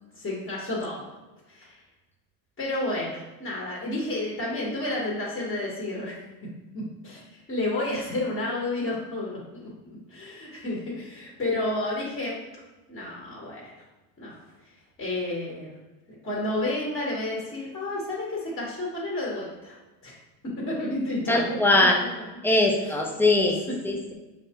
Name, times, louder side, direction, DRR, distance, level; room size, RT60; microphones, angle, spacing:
voice 1, 0.1-1.1 1.5-1.8 2.6-6.2 6.7-12.4 12.9-13.7 14.2-14.4 15.0-15.7 16.2-19.8 20.0-20.1 20.6-21.6 22.8-23.0, left 2 dB, 25° left, -4 dB, 1.3 m, -31 dB
voice 2, 21.3-22.0 22.4-24.1, left 2 dB, 5° left, 1 dB, 0.3 m, -22 dB
5.1 x 3.3 x 2.9 m, 1.1 s
supercardioid pair, 120°, 45 cm